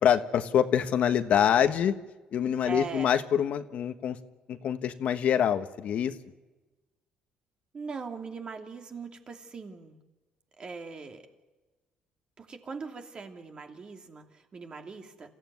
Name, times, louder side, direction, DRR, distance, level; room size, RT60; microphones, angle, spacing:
voice 1, 0.0-1.9 2.3-4.2 4.5-6.1, left 9 dB, 65° left, 9 dB, 1.3 m, -25 dB
voice 2, 2.6-3.2 7.7-10.0 10.6-11.2 12.4-15.3, right 4 dB, 40° right, 4 dB, 2.7 m, -40 dB
27.5 x 15.0 x 9.4 m, 1.2 s
cardioid pair, 110°, 3 cm